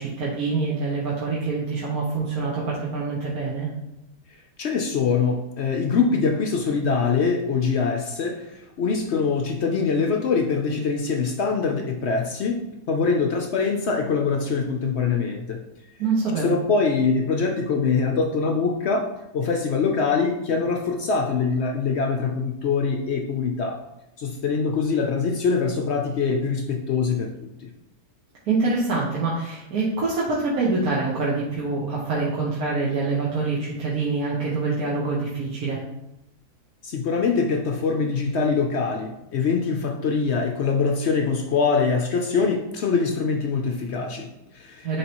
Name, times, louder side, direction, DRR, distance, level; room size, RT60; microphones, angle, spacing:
voice 1, 0.0-3.7 16.0-16.5 28.5-35.8 44.8-45.0, right 3 dB, 70° right, -6 dB, 1.5 m, -25 dB
voice 2, 4.6-15.6 16.4-19.1 19.3-23.8 24.2-27.5 36.8-45.0, left 5 dB, 65° left, 3 dB, 0.6 m, -23 dB
9.5 x 3.4 x 2.9 m, 0.90 s
omnidirectional pair, 1.7 m